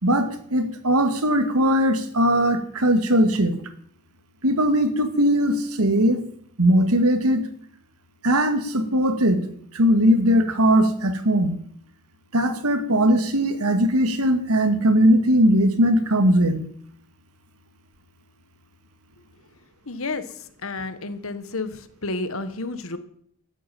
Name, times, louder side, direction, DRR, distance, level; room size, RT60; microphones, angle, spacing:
voice 1, 0.0-3.6 4.4-6.2 6.6-7.5 8.2-9.5 9.7-11.5 12.3-16.7, equal, 85° right, 9 dB, 2.0 m, -19 dB
voice 2, 19.9-20.2 20.6-23.0, left 3 dB, 70° left, 11 dB, 1.5 m, -30 dB
14.0 x 8.5 x 9.1 m, 0.64 s
head